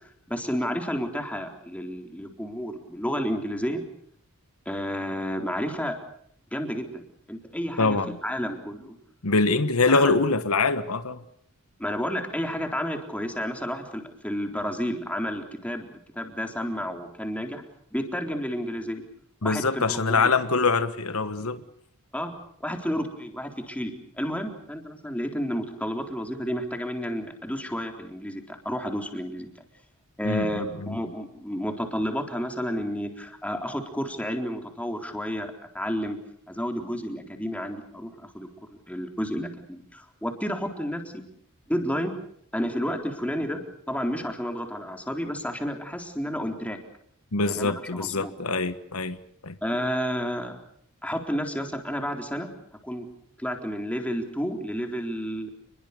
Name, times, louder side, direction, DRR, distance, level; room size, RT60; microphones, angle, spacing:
voice 1, 0.3-3.8 4.7-6.0 6.5-9.0 9.9-10.1 11.8-15.9 16.2-17.6 17.9-19.0 19.4-20.3 22.1-22.3 22.6-29.5 30.2-36.2 36.5-41.2 41.7-42.1 42.5-43.6 43.9-46.8 47.5-48.3 49.6-50.5 51.0-52.5 52.8-53.1 53.4-55.5, equal, 5° left, 4 dB, 3.9 m, -31 dB
voice 2, 7.8-8.2 9.2-11.2 19.4-21.6 30.2-31.0 47.3-49.2 49.4-49.5, left 3 dB, 75° left, 12 dB, 1.4 m, -24 dB
29.0 x 21.5 x 6.8 m, 0.67 s
head